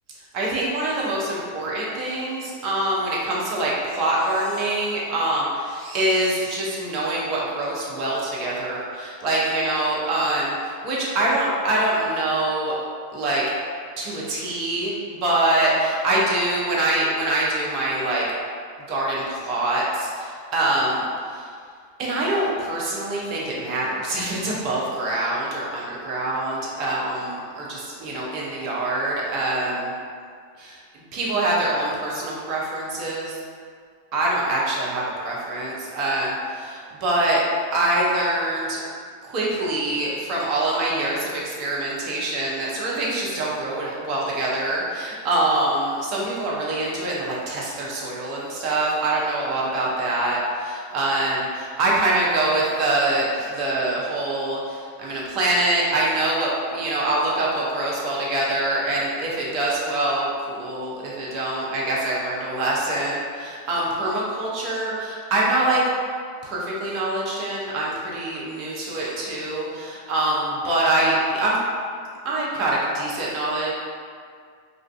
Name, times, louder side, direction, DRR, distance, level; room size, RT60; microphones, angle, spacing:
voice 1, 0.3-12.7 13.1-13.4 14.0-18.2 18.9-21.5 22.0-29.9 30.6-30.8 31.1-33.4 34.1-37.4 37.7-38.8 39.2-65.8 66.4-71.6 72.2-73.7, right 1 dB, 40° right, -5 dB, 0.6 m, -24 dB
2.4 x 2.3 x 2.2 m, 2.1 s
figure-of-eight pair, 90°, 0 cm